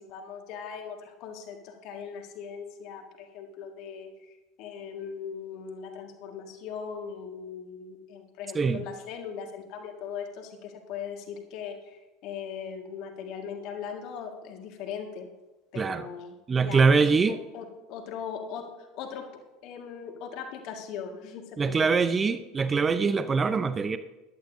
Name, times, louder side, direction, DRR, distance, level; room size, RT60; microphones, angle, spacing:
voice 1, 0.0-15.3 15.7-19.3 19.6-22.1, left 7 dB, 50° left, 3 dB, 1.9 m, -39 dB
voice 2, 15.8-16.1 16.5-17.4 21.6-24.0, right 5 dB, 25° right, 12 dB, 0.6 m, -23 dB
15.5 x 11.0 x 2.7 m, 1.1 s
figure-of-eight pair, 75°, 0 cm